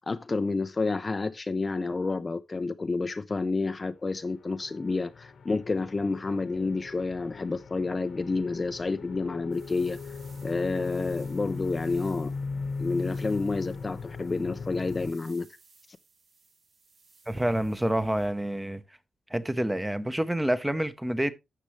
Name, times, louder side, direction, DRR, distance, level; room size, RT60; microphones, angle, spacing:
voice 1, 0.1-10.0 10.4-12.3 12.8-15.5, left 3 dB, 25° left, 0.4 m, -29 dB
sound 1, 4.2-15.1, left 4 dB, 60° left, 1.0 m, -38 dB
sound 2, 9.5-18.3, right 4 dB, 55° right, 4.5 m, -59 dB
voice 2, 17.3-18.8 19.3-21.3, right 1 dB, 5° right, 0.7 m, -28 dB
12.0 x 7.4 x 3.1 m
wide cardioid pair, 165°, 0 cm